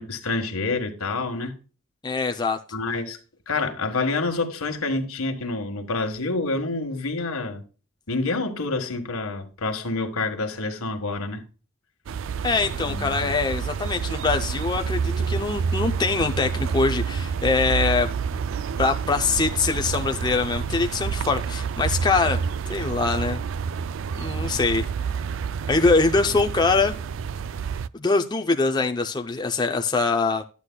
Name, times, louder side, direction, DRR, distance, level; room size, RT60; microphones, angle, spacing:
voice 1, 0.0-1.6 2.7-3.2 3.5-7.6 8.1-11.4 12.8-13.3, left 3 dB, 85° left, 1.5 m, -28 dB
voice 2, 2.0-2.6 12.4-15.0 15.3-18.4 18.8-23.4 24.2-24.8 25.7-26.9 27.9-30.4, left 3 dB, 20° left, 0.5 m, -23 dB
sound 1, 12.1-27.9, right 6 dB, 60° right, 0.3 m, -28 dB
11.5 x 8.3 x 2.2 m
head